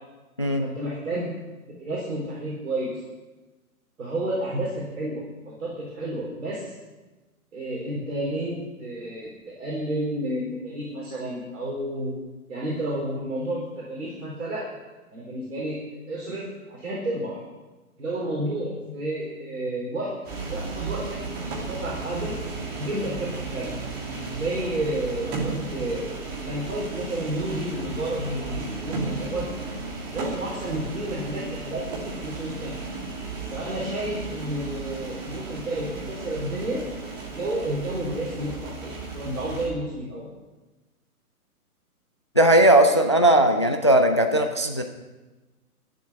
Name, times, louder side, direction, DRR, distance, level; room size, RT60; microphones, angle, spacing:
voice 1, 0.6-1.3 1.7-2.9 4.0-6.7 7.5-12.1 12.5-15.8 16.1-17.4 18.0-20.1 20.5-22.4 22.8-23.8 24.3-26.1 26.4-29.5 30.1-32.8 33.5-36.8 37.3-40.3, right 1 dB, 55° right, -4 dB, 4.3 m, -31 dB
sound 1, 20.2-39.7, right 3 dB, 20° right, 2.9 m, -34 dB
voice 2, 42.4-44.8, right 1 dB, 20° left, 6 dB, 0.4 m, -18 dB
12.0 x 7.5 x 9.9 m, 1.2 s
figure-of-eight pair, 125°, 45 cm